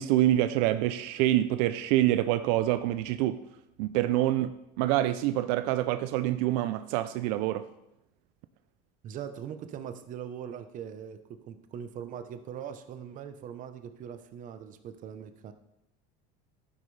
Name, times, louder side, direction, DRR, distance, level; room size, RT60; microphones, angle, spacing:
voice 1, 0.0-3.4 3.8-7.7, right 14 dB, 75° right, 12 dB, 0.5 m, -26 dB
voice 2, 9.0-15.5, right 8 dB, 40° right, 9 dB, 0.8 m, -41 dB
11.5 x 9.4 x 3.3 m, 0.87 s
cardioid pair, 145°, 21 cm